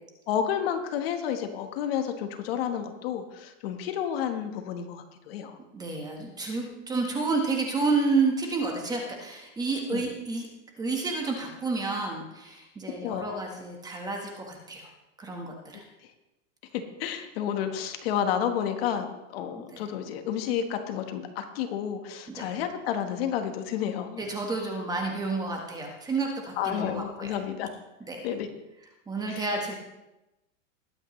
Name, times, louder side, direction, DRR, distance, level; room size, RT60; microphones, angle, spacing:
voice 1, 0.3-5.6 9.9-10.0 13.0-13.4 15.7-15.8 17.0-24.2 26.6-27.7 28.2-28.5 29.3-29.5, left 9 dB, 50° left, 6 dB, 1.4 m, -31 dB
voice 2, 5.7-10.5 10.8-14.9 15.2-15.8 19.7-19.8 22.4-22.5 24.2-27.4 28.1-28.3 29.1-29.7, right 3 dB, 10° right, 1 dB, 1.4 m, -30 dB
20.5 x 8.7 x 3.2 m, 0.96 s
supercardioid pair, 160°, 38 cm